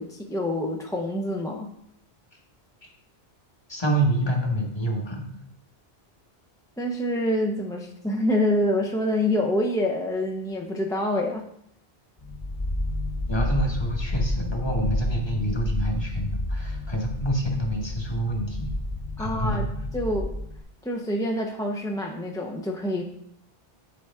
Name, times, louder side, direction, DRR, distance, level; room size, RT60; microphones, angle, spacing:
voice 1, 0.0-1.7 6.8-11.4 19.2-19.6 19.9-20.3 20.8-23.0, left 1 dB, 5° left, 0 dB, 0.4 m, -26 dB
voice 2, 3.7-5.2 13.3-18.7 19.2-19.7, right 1 dB, 25° left, 0 dB, 1.2 m, -27 dB
sound 1, 12.2-20.6, left 1 dB, 40° left, 1.0 m, -30 dB
9.2 x 4.6 x 3.5 m, 0.74 s
omnidirectional pair, 1.0 m